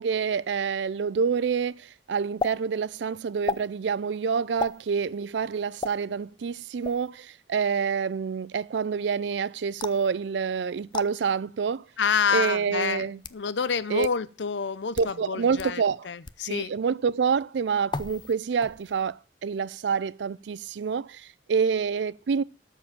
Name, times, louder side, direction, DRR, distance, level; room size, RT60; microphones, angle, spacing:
voice 1, 0.0-11.9 12.3-13.2 13.9-14.1 15.0-16.1 16.4-22.4, right 6 dB, 80° right, 0.4 m, -27 dB
sound 1, 2.4-2.5 3.4-3.7 4.6-4.8 5.8-5.9 6.8-7.1 9.8-10.1 10.9-11.1 12.0-12.1 13.0-13.4 14.0-14.1 14.8-15.1 15.6-15.7 16.2-16.4 17.9-18.3 18.6-19.0, left 4 dB, 25° left, 0.4 m, -33 dB
voice 2, 12.0-16.7, left 6 dB, 90° left, 0.6 m, -28 dB
13.0 x 4.6 x 7.3 m
head